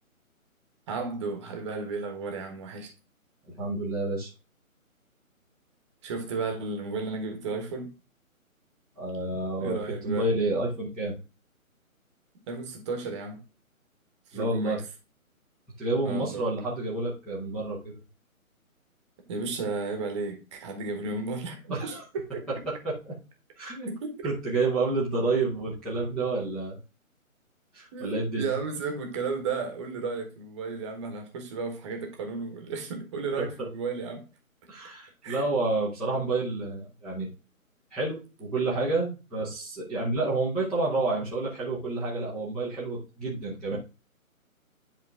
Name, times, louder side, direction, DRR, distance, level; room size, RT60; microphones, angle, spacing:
voice 1, 0.9-2.9 6.0-7.9 9.6-10.3 12.5-13.4 14.3-14.8 16.0-16.4 19.3-22.0 22.3-22.5 23.8-24.3 27.9-34.2 35.2-35.4 43.7-43.8, right 4 dB, 20° right, 1.4 m, -33 dB
voice 2, 3.5-4.3 9.0-9.8 10.0-11.1 14.3-14.8 15.8-18.0 21.7-22.0 22.6-23.0 23.6-23.9 24.2-26.8 27.7-28.4 33.4-33.7 34.7-37.3 37.9-43.8, right 2 dB, ahead, 0.9 m, -29 dB
10.5 x 3.8 x 3.5 m
figure-of-eight pair, 145°, 43 cm